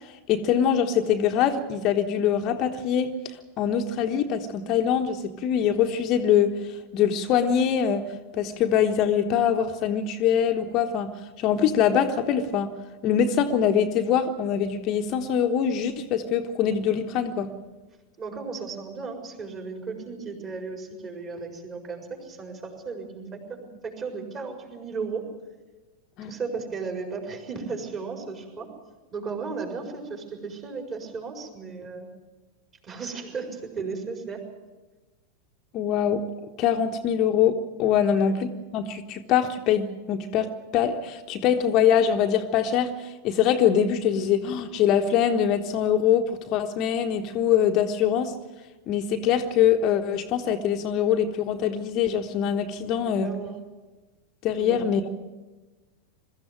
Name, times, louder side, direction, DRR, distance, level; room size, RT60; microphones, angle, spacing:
voice 1, 0.3-8.1 8.3-11.1 11.4-12.7 13.0-17.5 26.2-26.3 35.7-36.2 36.6-48.3 48.9-53.3 54.4-55.0, left 8 dB, 35° left, 1.2 m, -23 dB
voice 2, 18.2-25.2 26.2-28.7 29.1-32.1 32.8-34.4 38.0-38.3 53.0-53.6 54.6-54.8, right 4 dB, 30° right, 5.0 m, -35 dB
22.5 x 14.0 x 9.1 m
figure-of-eight pair, 90°, 0 cm